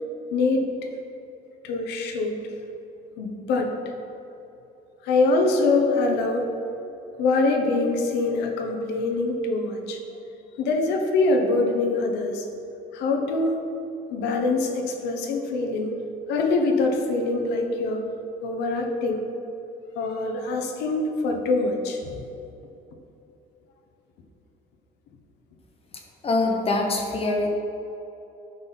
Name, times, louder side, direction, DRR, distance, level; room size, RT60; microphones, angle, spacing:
voice 1, 0.3-0.7 1.6-2.4 3.2-3.9 5.0-6.5 7.2-10.0 10.6-12.4 12.9-13.6 14.1-15.9 16.3-18.0 18.4-19.2 19.9-22.3, left 3 dB, 90° left, 3 dB, 1.0 m, -24 dB
voice 2, 26.2-27.5, left 2 dB, 35° left, 1 dB, 1.2 m, -23 dB
9.7 x 5.5 x 4.1 m, 2.9 s
cardioid pair, 110°, 17 cm